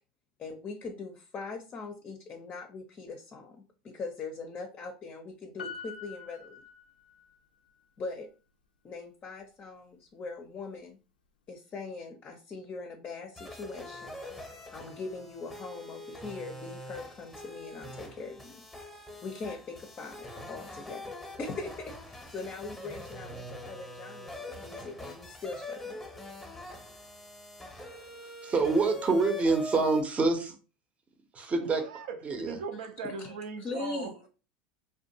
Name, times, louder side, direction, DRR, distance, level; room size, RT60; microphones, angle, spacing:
voice 1, 0.4-6.6 8.0-8.3 8.8-11.0 11.5-14.2 14.7-18.6 19.2-26.0 33.0-34.1, left 4 dB, 35° left, 4 dB, 0.5 m, -41 dB
Piano, 5.6-7.4 7.7-7.8, left 7 dB, 90° left, 0.3 m, -45 dB
sound 1, 13.4-30.0, left 1 dB, ahead, 0.8 m, -44 dB
voice 2, 28.4-30.5 31.3-31.8 32.2-32.6, right 3 dB, 30° right, 6 dB, 0.7 m, -26 dB
voice 3, 31.6-32.2 32.5-34.3, right 5 dB, 70° right, 7 dB, 0.5 m, -39 dB
2.5 x 2.2 x 2.7 m, 0.34 s
hypercardioid pair, 85°, 5 cm